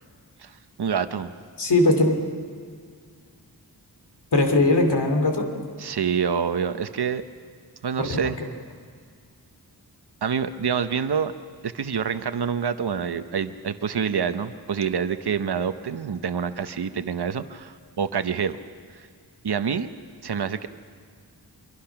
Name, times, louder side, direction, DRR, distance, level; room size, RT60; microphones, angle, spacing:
voice 1, 0.4-1.3 5.8-7.2 7.8-8.4 10.2-11.3 11.6-18.6 19.4-19.9 20.2-20.7, right 7 dB, 75° right, 9 dB, 0.9 m, -27 dB
voice 2, 1.6-2.2 4.3-5.5 8.0-8.3, left 2 dB, 90° left, 4 dB, 2.8 m, -20 dB
25.0 x 24.0 x 5.9 m, 2.1 s
wide cardioid pair, 65°, 40 cm